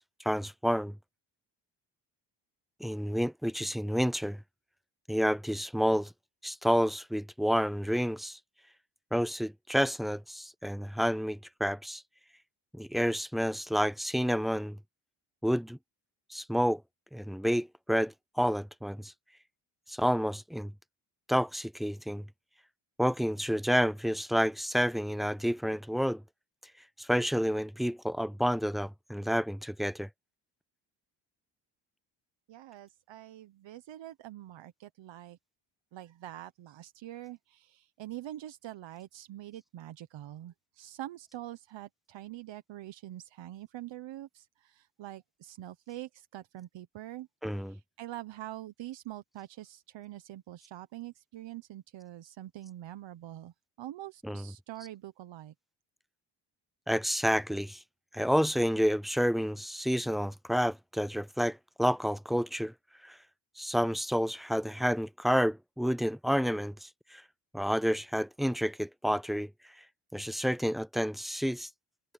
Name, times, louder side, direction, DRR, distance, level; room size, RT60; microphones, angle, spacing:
voice 1, 0.2-1.0 2.8-4.4 5.1-6.1 6.4-8.4 9.1-12.0 12.7-14.8 15.4-15.8 16.3-16.8 17.1-19.1 19.9-20.7 21.3-22.2 23.0-26.2 27.0-30.1 47.4-47.8 54.2-54.4 56.9-57.8 58.1-62.7 63.0-63.2 63.6-67.2 67.5-69.5 70.1-71.7, equal, ahead, 0.3 m, -29 dB
voice 2, 32.5-35.4 35.9-47.3 47.5-55.5, right 14 dB, 70° right, 1.2 m, -45 dB
cardioid pair, 85°, 45 cm